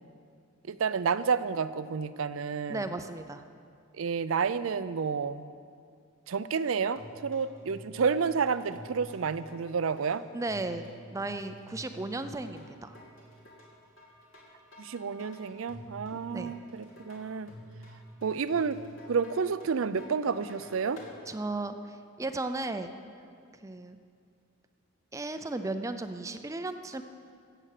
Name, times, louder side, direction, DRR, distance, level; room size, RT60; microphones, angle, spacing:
voice 1, 0.7-2.8 3.9-5.5 6.3-10.2 14.8-17.5 18.2-18.8 19.1-21.0, right 5 dB, 80° right, 14 dB, 0.5 m, -30 dB
voice 2, 2.7-3.4 10.3-13.0 16.3-16.5 21.3-22.9 23.6-24.0 25.1-27.0, right 2 dB, 15° right, 8 dB, 0.5 m, -35 dB
sound 1, 7.0-21.2, equal, 70° left, 2.7 m, -50 dB
16.0 x 7.8 x 6.6 m, 2.3 s
head